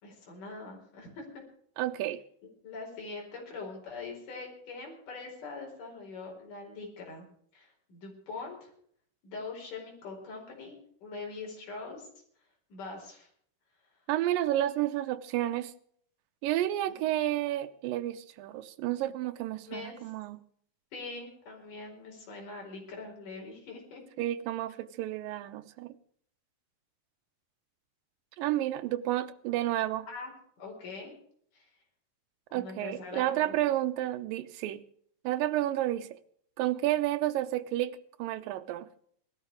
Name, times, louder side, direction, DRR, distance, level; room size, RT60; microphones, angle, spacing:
voice 1, 0.0-1.3 2.6-7.3 7.5-8.7 9.2-10.8 11.0-12.1 12.7-13.3 16.9-17.0 19.6-20.1 20.9-24.0 30.1-30.3 30.6-31.2 31.5-31.7 32.5-33.6, left 3 dB, 70° left, 6.1 m, -43 dB
voice 2, 1.8-2.2 14.1-15.7 16.4-20.4 24.2-25.9 28.4-30.1 32.5-34.8 35.2-36.2 36.6-38.9, right 14 dB, 80° right, 2.5 m, -31 dB
19.0 x 12.5 x 4.7 m
omnidirectional pair, 3.9 m